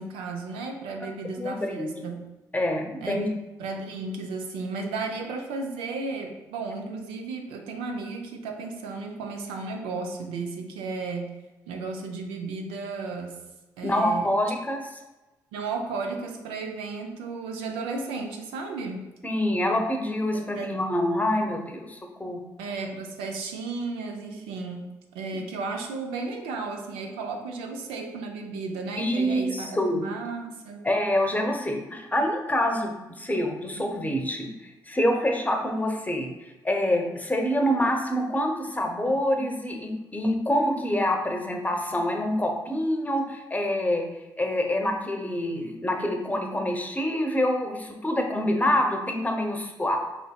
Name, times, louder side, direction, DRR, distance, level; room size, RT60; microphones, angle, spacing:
voice 1, 0.0-2.3 3.0-3.3 3.6-11.4 11.7-13.4 13.8-14.3 15.5-19.1 20.3-20.8 22.6-24.9 25.1-30.9, right 3 dB, 75° right, 3 dB, 0.5 m, -34 dB
voice 2, 1.4-1.9 2.5-3.2 13.8-14.8 19.2-22.4 29.0-30.0 30.8-44.1 44.4-50.0, left 1 dB, 15° left, 3 dB, 0.8 m, -26 dB
4.4 x 4.0 x 2.3 m, 1.1 s
hypercardioid pair, 50°, 9 cm